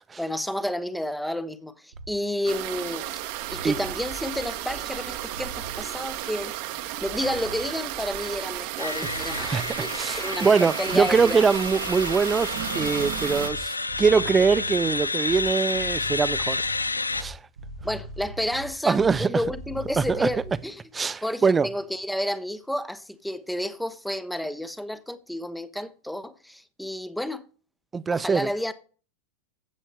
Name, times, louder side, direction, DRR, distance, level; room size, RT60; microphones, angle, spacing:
voice 1, 0.2-3.0 3.5-6.5 7.0-11.4 17.8-20.8 21.2-27.4 28.1-28.7, left 1 dB, ahead, 0.8 m, -31 dB
sound 1, 1.9-2.1 3.5-3.9 5.3-5.8 7.2-7.7 9.0-9.5 10.9-11.4 12.7-20.6, right 1 dB, 75° right, 2.1 m, -40 dB
sound 2, 2.5-13.5, right 13 dB, 45° right, 1.0 m, -33 dB
sound 3, 8.8-17.2, left 3 dB, 80° left, 0.4 m, -30 dB
voice 2, 9.4-16.6 17.1-17.4 18.9-19.3 20.0-20.3 20.9-21.7 27.9-28.5, right 5 dB, 15° right, 0.4 m, -23 dB
15.5 x 7.5 x 3.3 m
figure-of-eight pair, 90°, 0 cm